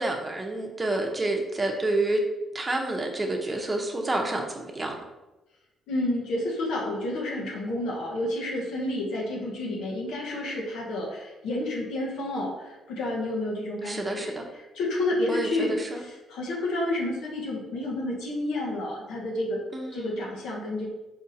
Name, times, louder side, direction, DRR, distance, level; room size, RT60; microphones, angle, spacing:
voice 1, 0.0-2.2 2.5-4.9 13.8-14.4 15.3-16.0 19.7-20.2, right 2 dB, 20° right, 2 dB, 0.9 m, -29 dB
voice 2, 5.9-14.4 14.7-19.6 19.9-20.9, left 1 dB, 85° left, -2 dB, 1.2 m, -30 dB
4.9 x 2.5 x 4.2 m, 1.0 s
cardioid pair, 90°, 0 cm